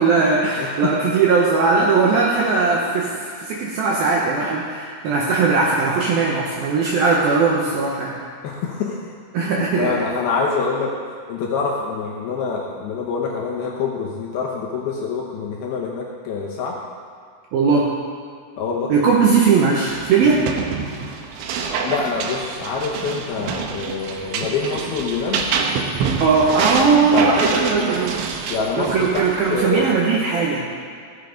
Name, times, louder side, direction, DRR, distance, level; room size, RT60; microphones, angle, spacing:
voice 1, 0.0-3.1 3.4-8.1 9.3-10.0 17.5-17.9 18.9-20.4 26.2-28.2 28.8-30.7, right 4 dB, 75° right, -2 dB, 2.3 m, -18 dB
voice 2, 0.6-0.9 8.4-9.1 9.4-10.9 11.3-16.8 18.6-18.9 21.7-25.5 27.1-27.3 28.5-29.9, left 5 dB, 70° left, -2 dB, 2.6 m, -25 dB
sound 1, 19.9-29.7, right 5 dB, 90° right, 3.3 m, -26 dB
15.0 x 8.2 x 5.1 m, 2.2 s
omnidirectional pair, 5.4 m